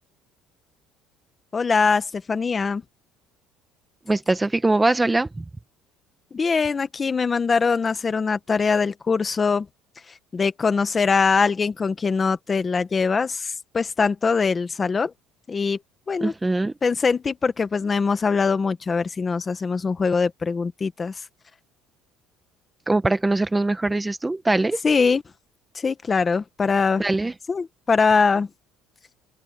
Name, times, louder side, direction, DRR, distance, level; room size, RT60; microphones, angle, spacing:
voice 1, 1.5-2.8 6.3-9.7 10.1-15.1 15.5-15.8 16.1-16.3 16.8-21.3 24.8-25.2 25.7-27.0 27.5-28.5, left 5 dB, 20° left, 1.0 m, -22 dB
voice 2, 4.1-5.4 16.2-16.7 22.9-24.8 27.0-27.3, right 2 dB, 10° right, 0.8 m, -22 dB
open air
cardioid pair, 160°, 0 cm